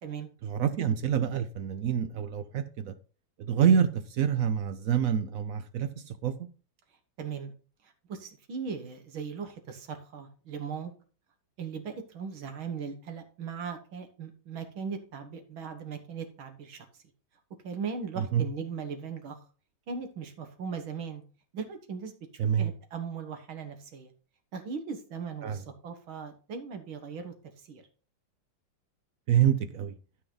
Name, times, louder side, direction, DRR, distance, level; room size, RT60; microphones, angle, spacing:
voice 1, 0.4-2.9 3.4-6.5 18.2-18.4 22.4-22.7 25.4-25.6 29.3-29.9, right 8 dB, 70° right, 0.8 m, -27 dB
voice 2, 7.2-7.5 7.8-10.9 11.6-16.9 17.6-19.4 19.9-21.2 21.5-22.1 22.6-24.1 24.5-27.3 27.6-27.8, right 6 dB, 85° right, 2.3 m, -38 dB
12.5 x 5.6 x 3.9 m
omnidirectional pair, 2.2 m